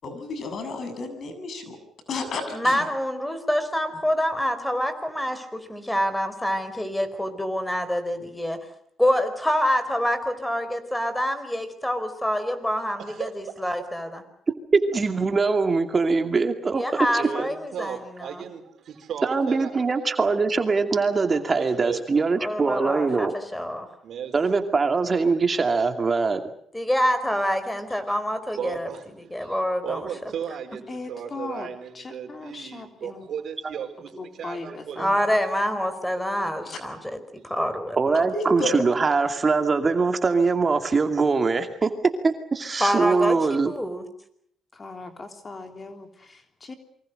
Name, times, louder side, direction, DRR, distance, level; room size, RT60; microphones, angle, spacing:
voice 1, 0.0-1.8 2.1-2.8 36.7-36.8 38.3-38.7, left 2 dB, 55° left, 8 dB, 7.6 m, -31 dB
voice 2, 2.5-8.6 9.0-13.3 13.6-14.2 16.7-18.4 22.4-23.9 26.7-28.9 29.3-30.1 35.0-38.3 42.8-44.0, equal, 5° left, 11 dB, 4.8 m, -26 dB
voice 3, 13.0-13.6 17.2-19.7 21.3-22.3 24.0-24.4 27.9-28.0 28.6-35.3, right 8 dB, 65° right, 6 dB, 4.4 m, -36 dB
voice 4, 14.7-17.2 19.2-23.3 24.3-26.4 38.0-41.9 42.2-43.7, right 4 dB, 35° right, 6 dB, 2.4 m, -22 dB
voice 5, 30.9-31.7 31.9-33.3 34.1-35.2 44.7-46.7, left 3 dB, 35° left, 6 dB, 3.4 m, -39 dB
27.5 x 24.5 x 6.6 m, 0.68 s
cardioid pair, 90°, 0 cm